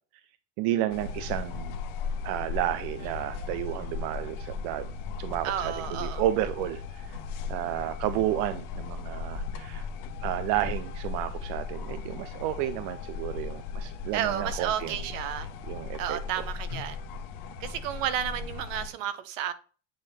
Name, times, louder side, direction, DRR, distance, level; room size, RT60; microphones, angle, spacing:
voice 1, 0.6-1.8 2.2-4.9 5.2-7.2 7.5-9.9 10.2-15.0 15.7-16.2, right 13 dB, 65° right, 0.6 m, -31 dB
sound 1, 0.9-18.9, left 5 dB, 55° left, 1.1 m, -37 dB
voice 2, 5.4-6.2 14.1-15.5 16.0-17.0 17.6-19.5, right 10 dB, 80° right, 1.0 m, -32 dB
8.7 x 3.6 x 4.2 m
supercardioid pair, 140°, 38 cm